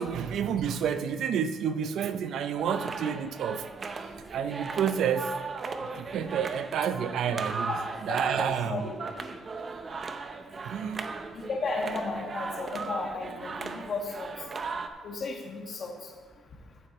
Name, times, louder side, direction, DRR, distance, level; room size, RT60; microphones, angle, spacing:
voice 1, 0.0-3.7 4.3-5.3 5.8-7.7 8.0-8.8 10.6-11.1, right 8 dB, 75° right, 0.5 m, -29 dB
sound 1, 2.6-14.9, right 4 dB, 40° right, 0.8 m, -37 dB
voice 2, 8.1-8.9 11.3-14.3 15.0-16.1, left 3 dB, 55° left, 1.9 m, -34 dB
14.5 x 7.6 x 3.1 m
cardioid pair, 90°, 0 cm